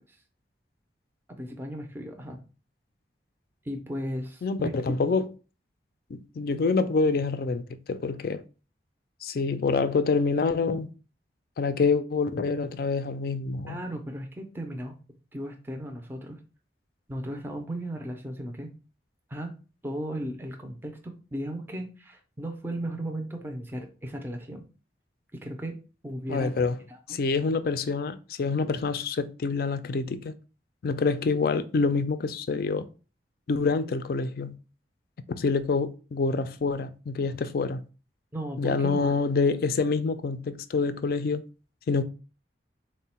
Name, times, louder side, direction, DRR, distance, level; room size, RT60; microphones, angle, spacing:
voice 1, 1.4-2.4 3.6-4.9 13.7-14.9 15.3-16.4 17.1-18.7 19.3-19.5 19.8-24.6 25.3-25.8 26.0-26.5 26.9-27.2 38.3-39.2, right 1 dB, 10° right, 0.4 m, -36 dB
voice 2, 4.4-5.3 6.1-8.4 9.2-10.9 11.6-13.8 26.3-26.8 27.1-30.3 30.8-32.9 33.5-34.6 35.3-37.8 38.6-41.4 41.9-42.0, left 4 dB, 50° left, 0.3 m, -26 dB
3.7 x 2.1 x 4.2 m
head